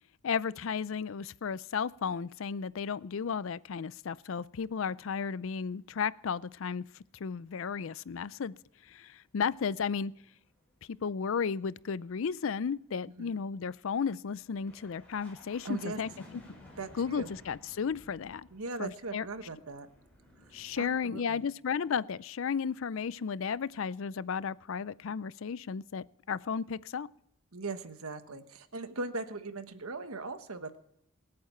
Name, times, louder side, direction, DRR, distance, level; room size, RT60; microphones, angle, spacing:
voice 1, 0.2-6.8 7.1-8.5 8.9-10.1 10.9-16.1 17.0-18.5 18.8-19.3 20.5-27.1, left 6 dB, 65° left, 20 dB, 0.4 m, -34 dB
sound 1, 6.8-8.9 9.2-21.0, left 1 dB, 5° left, 5.1 m, -57 dB
voice 2, 15.6-16.0 16.8-17.3 18.5-19.9 20.8-21.4 27.5-30.8, right 3 dB, 80° right, 9 dB, 1.3 m, -39 dB
26.0 x 8.6 x 4.4 m, 0.73 s
head